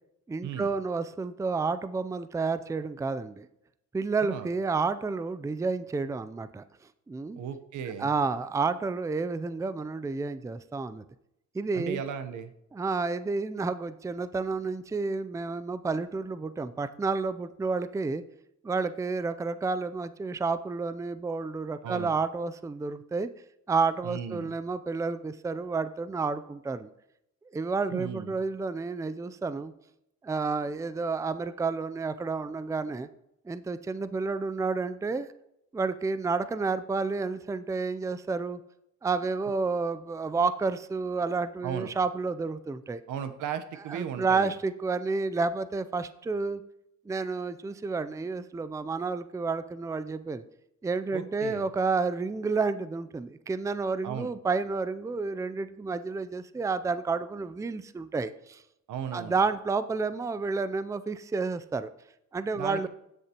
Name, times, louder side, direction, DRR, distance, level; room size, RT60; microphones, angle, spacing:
voice 1, 0.3-3.5 3.9-6.6 7.1-7.4 8.0-11.0 11.5-12.0 12.7-18.2 18.6-23.3 23.7-26.9 27.5-29.7 30.2-33.1 33.5-35.3 35.7-38.6 39.0-43.0 43.9-46.6 47.1-50.4 50.8-58.6 59.1-61.9 62.3-62.9, right 4 dB, 10° right, 13 dB, 0.4 m, -30 dB
voice 2, 7.4-8.1 11.7-12.5 21.8-22.1 24.0-24.6 27.9-28.4 41.6-41.9 43.1-44.5 51.1-51.7 54.0-54.3 58.9-59.3 62.5-62.9, right 8 dB, 80° right, 9 dB, 1.0 m, -36 dB
15.5 x 6.7 x 2.9 m, 0.80 s
cardioid pair, 90°, 30 cm